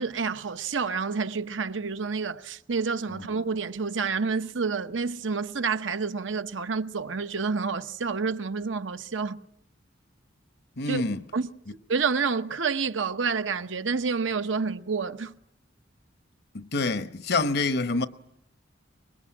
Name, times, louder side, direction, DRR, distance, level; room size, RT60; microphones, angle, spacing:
voice 1, 0.0-9.4 10.9-11.0 11.3-11.5 11.9-15.3, right 5 dB, 80° right, 0.9 m, -29 dB
voice 2, 10.8-11.2 16.5-18.1, left 3 dB, 60° left, 0.9 m, -26 dB
24.0 x 21.0 x 8.6 m
head